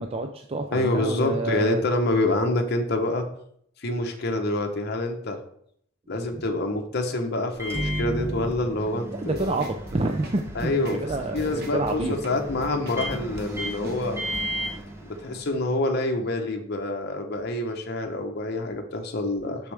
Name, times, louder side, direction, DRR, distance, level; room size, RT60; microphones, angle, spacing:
voice 1, 0.0-1.8 9.1-12.1, right 2 dB, 30° right, 4 dB, 0.4 m, -28 dB
voice 2, 0.7-3.3 3.8-5.4 6.1-9.5 10.5-11.0 11.3-14.2 15.0-19.7, left 2 dB, 50° left, 3 dB, 0.8 m, -26 dB
Microwave oven, 7.5-15.7, equal, 10° right, 0.7 m, -34 dB
sound 1, 9.3-14.4 14.8-14.9, equal, 50° right, 1.2 m, -41 dB
6.6 x 6.2 x 3.3 m, 0.67 s
head